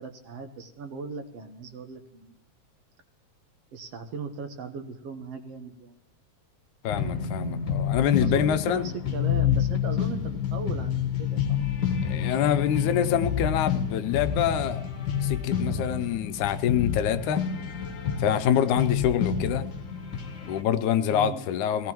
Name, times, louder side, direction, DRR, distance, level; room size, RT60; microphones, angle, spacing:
voice 1, 0.0-2.4 3.7-6.0 8.2-11.6 21.1-21.5, right 5 dB, 65° right, 5 dB, 1.9 m, -38 dB
voice 2, 6.8-8.9 12.0-14.9 15.2-17.5 18.2-19.7 20.5-21.9, left 9 dB, 85° left, 11 dB, 2.2 m, -25 dB
sound 1, 6.9-20.6, left 8 dB, 45° left, 2.0 m, -29 dB
20.5 x 17.0 x 3.0 m, 0.89 s
omnidirectional pair, 3.4 m